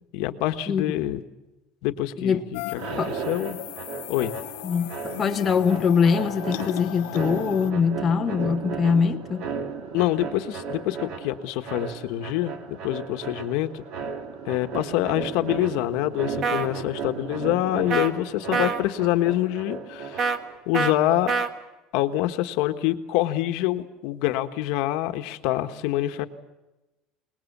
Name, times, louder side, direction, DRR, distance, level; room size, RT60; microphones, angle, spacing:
voice 1, 0.1-1.2 1.8-3.0 3.3-3.6 4.1-4.3 9.9-13.8 14.4-20.4 20.7-21.3 21.9-26.3, left 14 dB, 60° left, 1.3 m, -26 dB
sound 1, 2.5-7.7, left 20 dB, 85° left, 0.7 m, -36 dB
sound 2, 2.7-20.6, right 5 dB, 50° right, 2.7 m, -35 dB
voice 2, 5.2-9.5, left 6 dB, 20° left, 0.9 m, -22 dB
sound 3, 16.4-16.7 17.9-18.1 18.5-18.8 20.2-20.4 20.7-20.9 21.3-21.5, right 5 dB, 30° right, 1.5 m, -24 dB
27.5 x 20.0 x 7.3 m
cardioid pair, 180°, 0 cm